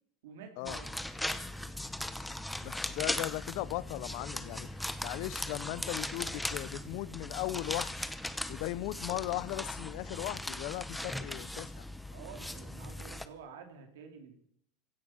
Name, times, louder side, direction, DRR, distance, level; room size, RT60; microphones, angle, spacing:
voice 1, 0.2-1.0 12.1-14.3, right 6 dB, 90° right, 3.0 m, -49 dB
sound 1, 0.7-13.3, left 1 dB, 5° left, 0.9 m, -39 dB
voice 2, 2.6-4.7 5.0-8.1 8.5-11.7, left 19 dB, 65° left, 0.7 m, -37 dB
16.5 x 11.0 x 7.2 m
supercardioid pair, 130°, 0 cm